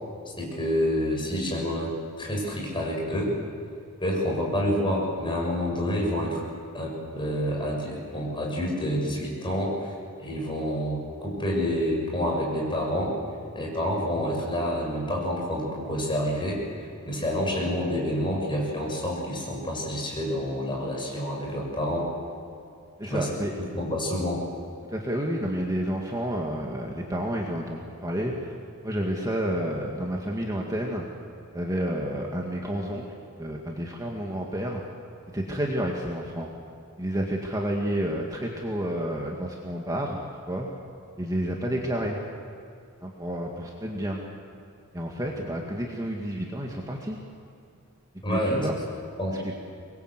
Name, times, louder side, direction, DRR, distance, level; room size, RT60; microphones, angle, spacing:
voice 1, 0.4-3.3 4.0-6.4 6.7-13.2 13.6-22.1 23.0-23.3 23.7-24.4 48.2-48.7 49.2-49.4, equal, 20° left, -2 dB, 7.0 m, -28 dB
voice 2, 23.0-23.5 24.8-28.5 28.8-31.1 31.5-33.0 33.4-34.8 35.3-36.5 37.0-40.7 41.2-42.2 43.0-44.2 44.9-47.2 48.3-48.8 49.3-49.5, equal, 15° right, 0 dB, 2.0 m, -30 dB
25.0 x 21.5 x 8.1 m, 2.5 s
head